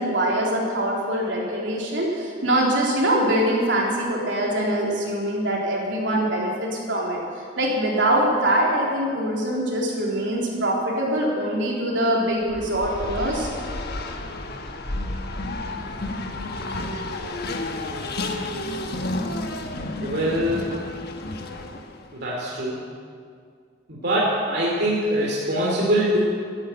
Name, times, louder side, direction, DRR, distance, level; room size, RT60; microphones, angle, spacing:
voice 1, 0.0-7.2 7.6-13.5, right 1 dB, 75° right, -3 dB, 3.7 m, -23 dB
Race car auto racing, 12.4-22.1, left 2 dB, 60° left, 1.3 m, -31 dB
voice 2, 20.0-20.7 22.1-22.8 23.9-26.2, right 1 dB, 60° right, -5 dB, 2.7 m, -23 dB
13.0 x 11.0 x 8.9 m, 2.2 s
head